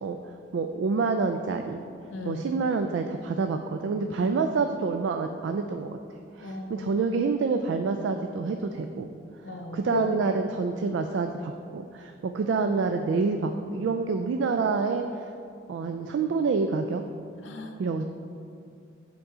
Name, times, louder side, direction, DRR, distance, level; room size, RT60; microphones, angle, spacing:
voice 1, 0.0-1.8 2.3-6.0 6.3-9.1 9.7-15.2 15.7-17.0 17.8-18.0, right 4 dB, 75° right, 6 dB, 0.3 m, -27 dB
voice 2, 2.1-2.5 4.2-4.4 6.4-7.0 9.4-10.4 17.4-17.7, left 1 dB, 90° left, 4 dB, 0.7 m, -34 dB
7.1 x 3.8 x 4.9 m, 2.5 s
head